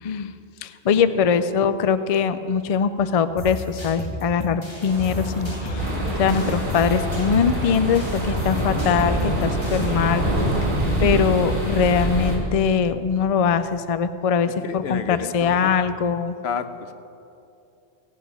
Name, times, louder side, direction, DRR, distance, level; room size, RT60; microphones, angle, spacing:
voice 1, 0.0-0.3 0.6-10.2 11.0-16.3, left 6 dB, 50° left, 12 dB, 0.4 m, -22 dB
voice 2, 1.1-1.6 14.6-15.7 16.4-16.9, left 6 dB, 70° left, 10 dB, 1.0 m, -32 dB
sound 1, 3.4-9.9, left 3 dB, 25° left, 1.8 m, -34 dB
sound 2, 4.9-10.7, right 2 dB, 35° right, 2.8 m, -31 dB
sound 3, 5.8-12.4, right 1 dB, 60° right, 2.8 m, -25 dB
17.5 x 8.7 x 5.5 m, 2.7 s
omnidirectional pair, 1.1 m